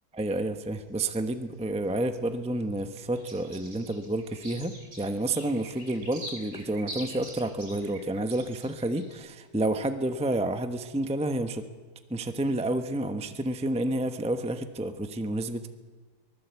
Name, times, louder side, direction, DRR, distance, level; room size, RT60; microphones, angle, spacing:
voice 1, 0.1-11.6 12.1-15.7, right 1 dB, 10° right, 8 dB, 0.4 m, -30 dB
sound 1, 0.8-2.2 2.6-9.2, right 1 dB, 70° right, 8.4 m, -45 dB
23.5 x 20.0 x 8.3 m, 1.4 s
omnidirectional pair, 2.3 m